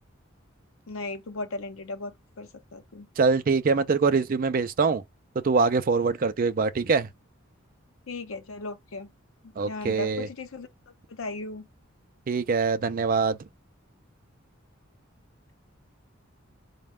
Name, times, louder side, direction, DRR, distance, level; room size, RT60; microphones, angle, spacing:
voice 1, 0.9-3.1 8.1-9.1 9.4-10.7 11.1-11.7, left 3 dB, 80° left, 0.7 m, -37 dB
voice 2, 3.2-5.0 5.4-7.1 9.6-10.3 12.3-13.4, right 4 dB, 45° right, 0.4 m, -23 dB
4.1 x 2.2 x 3.5 m
head